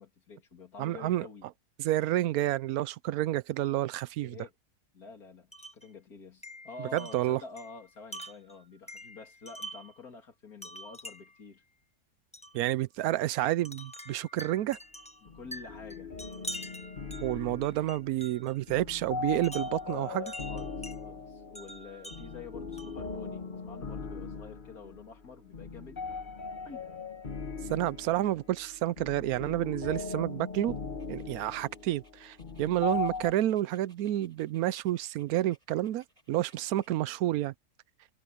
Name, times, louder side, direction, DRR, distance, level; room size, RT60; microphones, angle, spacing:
voice 1, 0.0-1.5 4.2-4.5 4.9-11.6 15.2-16.1 20.0-26.2 26.6-26.8, left 4 dB, 75° left, 3.3 m, -48 dB
voice 2, 0.8-1.3 1.8-4.4 6.9-7.4 12.5-14.8 17.2-20.3 27.7-30.8 31.1-37.5, right 14 dB, 75° right, 1.0 m, -30 dB
Wind chime, 5.5-5.9 6.4-10.0 10.6-11.4 12.3-12.6 13.6-18.6 19.4-21.0 21.5-23.1, equal, 5° left, 1.2 m, -46 dB
sound 1, 15.2-33.3, left 4 dB, 35° left, 1.4 m, -39 dB
Dog, 31.0-37.0, right 1 dB, 20° right, 7.4 m, -66 dB
omnidirectional pair, 1.6 m